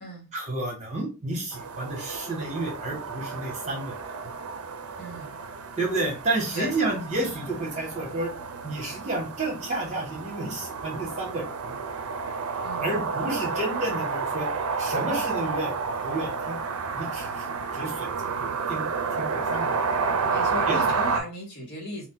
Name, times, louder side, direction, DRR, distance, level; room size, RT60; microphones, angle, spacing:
voice 1, 0.3-4.3 5.8-8.3 8.6-11.7 12.8-14.5 14.8-16.6 16.9-17.4 17.7-18.9 19.2-19.7 20.7-20.8, right 2 dB, 35° right, 0 dB, 1.2 m, -31 dB
sound 1, 1.5-21.2, right 5 dB, 80° right, 0.5 m, -31 dB
voice 2, 5.0-5.3 6.5-6.7 12.6-12.9 20.2-22.1, left 1 dB, 50° left, -2 dB, 1.4 m, -36 dB
2.6 x 2.5 x 3.7 m, 0.30 s
head